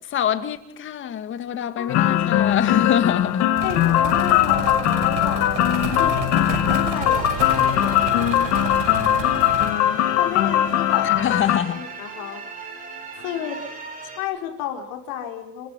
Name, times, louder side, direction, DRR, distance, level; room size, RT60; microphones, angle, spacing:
voice 1, 0.1-3.6 5.8-6.1 11.0-11.8, left 9 dB, 35° left, 2.0 m, -25 dB
voice 2, 1.8-2.6 3.6-5.6 5.9-8.6 10.2-12.4 13.1-13.6 14.2-15.7, left 9 dB, 85° left, 6.1 m, -32 dB
sound 1, 1.9-11.6, left 12 dB, 55° left, 1.9 m, -20 dB
sound 2, 3.6-9.7, right 5 dB, 70° right, 6.2 m, -31 dB
sound 3, 6.9-14.2, right 3 dB, 25° right, 5.5 m, -38 dB
28.0 x 15.0 x 9.7 m
cardioid pair, 160°, 33 cm